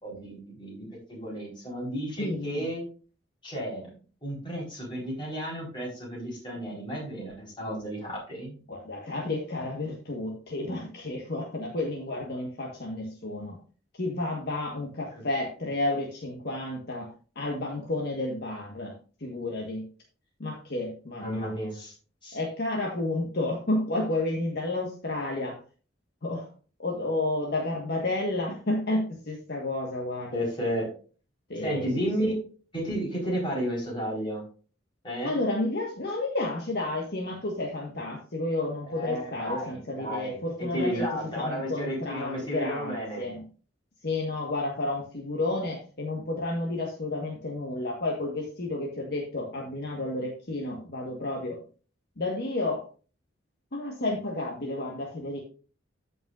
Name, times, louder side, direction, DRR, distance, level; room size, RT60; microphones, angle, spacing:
voice 1, 0.0-2.8 3.4-3.9 4.2-8.6 15.1-15.2 21.2-21.9 22.2-22.4 30.3-30.9 31.6-32.4 32.7-34.4 35.0-35.4 38.9-40.4 40.7-43.3, equal, 25° left, -4 dB, 4.2 m, -32 dB
voice 2, 2.2-2.6 8.7-13.6 14.0-18.9 19.2-19.9 20.4-21.5 22.3-25.6 26.2-26.5 26.8-30.4 31.5-31.9 35.2-43.4 44.0-51.6 52.2-52.8 53.7-55.4, left 2 dB, 55° left, -1 dB, 1.5 m, -31 dB
14.0 x 5.5 x 2.5 m, 0.38 s
head